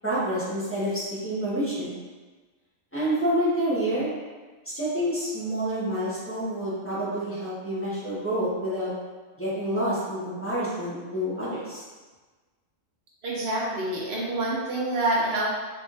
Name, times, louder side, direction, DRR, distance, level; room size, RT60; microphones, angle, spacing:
voice 1, 0.0-1.9 2.9-4.2 4.7-8.9 9.4-11.8, right 1 dB, 10° left, -11 dB, 1.1 m, -28 dB
voice 2, 13.2-15.5, right 1 dB, 50° right, -4 dB, 0.9 m, -27 dB
3.5 x 3.4 x 2.6 m, 1.3 s
omnidirectional pair, 1.4 m